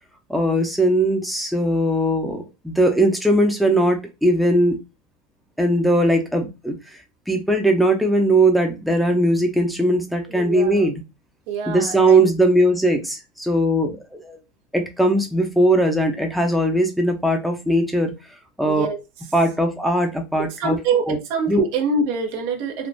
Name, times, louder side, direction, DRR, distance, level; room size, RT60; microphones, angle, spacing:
voice 1, 0.3-4.8 5.6-6.8 7.3-11.0 11.7-14.4 14.7-18.1 18.6-18.9 19.3-20.8 21.1-21.2 21.5-21.7, right 1 dB, ahead, 0.7 m, -19 dB
voice 2, 10.3-10.9 11.5-12.3 18.6-19.0 20.4-22.9, right 4 dB, 65° right, 0.9 m, -25 dB
3.5 x 2.4 x 2.6 m
hypercardioid pair, 95°, 0 cm